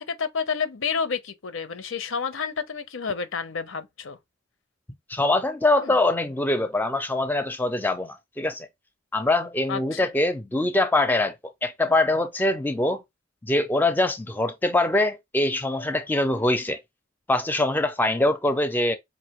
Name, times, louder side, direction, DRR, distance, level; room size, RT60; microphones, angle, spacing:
voice 1, 0.1-4.2 5.8-5.9 9.7-10.1, left 5 dB, 85° left, 0.7 m, -30 dB
voice 2, 5.1-8.7 9.1-11.3 11.6-13.0 13.4-16.8 17.3-19.0, left 2 dB, 10° left, 0.5 m, -23 dB
4.7 x 2.6 x 3.0 m
head